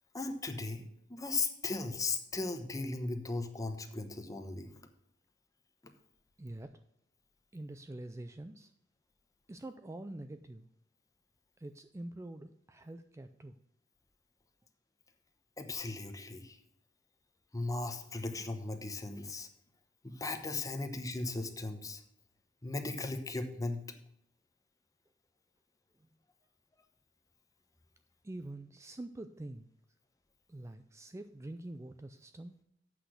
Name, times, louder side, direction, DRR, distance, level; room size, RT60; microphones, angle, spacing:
voice 1, 0.1-0.8 1.1-4.7 15.6-16.6 17.5-19.5 20.0-22.0 22.6-23.8, left 3 dB, 20° left, 7 dB, 0.9 m, -37 dB
voice 2, 6.4-6.7 7.5-8.7 9.5-10.7 11.6-13.6 28.2-29.7 30.5-32.5, right 1 dB, 15° right, 9 dB, 0.4 m, -45 dB
8.1 x 6.1 x 6.4 m, 0.77 s
head